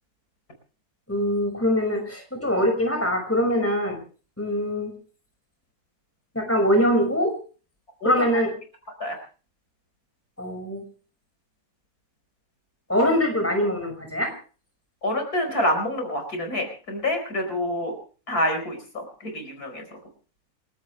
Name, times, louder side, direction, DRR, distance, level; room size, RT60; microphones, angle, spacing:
voice 1, 1.1-4.0 4.4-4.9 6.3-7.3 8.0-8.5 10.4-10.8 12.9-14.3, equal, 10° left, 3 dB, 5.7 m, -23 dB
voice 2, 8.0-8.4 9.0-9.2 15.0-17.9 18.3-20.0, left 1 dB, 75° left, 4 dB, 5.3 m, -27 dB
29.0 x 12.5 x 3.3 m, 0.40 s
omnidirectional pair, 1.6 m